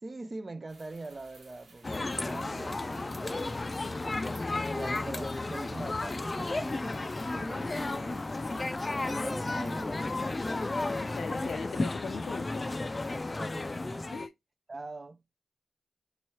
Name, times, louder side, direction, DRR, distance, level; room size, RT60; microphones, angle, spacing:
voice 1, 0.0-8.3 9.0-10.4 13.4-14.3 14.7-15.2, right 3 dB, 35° right, 0.4 m, -44 dB
sound 1, 0.7-11.5, right 2 dB, 90° right, 1.6 m, -57 dB
sound 2, 1.8-14.3, left 2 dB, 30° left, 0.3 m, -33 dB
voice 2, 11.1-12.6 14.1-14.3, left 5 dB, 85° left, 0.5 m, -39 dB
5.4 x 3.0 x 2.8 m
wide cardioid pair, 100°, 0 cm